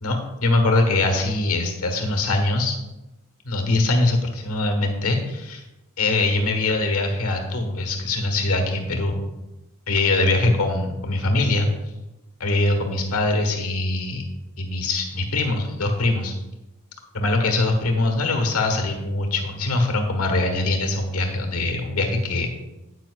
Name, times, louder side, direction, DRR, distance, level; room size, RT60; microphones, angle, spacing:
voice 1, 0.0-2.7 3.4-5.6 6.0-9.2 9.9-11.7 12.4-14.2 14.6-16.3 17.1-22.5, left 2 dB, 80° left, 4 dB, 1.4 m, -22 dB
9.4 x 8.9 x 2.4 m, 1.0 s
head